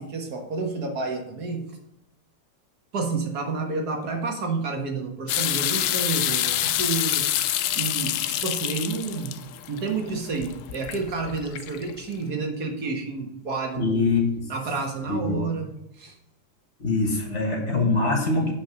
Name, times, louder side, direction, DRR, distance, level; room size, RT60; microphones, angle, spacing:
voice 1, 0.0-1.7 2.9-7.3 7.8-9.4 9.7-14.0 14.5-15.7 16.0-16.1, right 4 dB, 70° right, 2 dB, 2.0 m, -30 dB
sound 1, 5.3-12.1, left 12 dB, 70° left, 0.8 m, -27 dB
voice 2, 13.8-14.5 15.1-15.4 16.8-18.5, left 3 dB, 45° left, 0 dB, 1.9 m, -23 dB
8.5 x 5.3 x 5.7 m, 0.80 s
omnidirectional pair, 1.7 m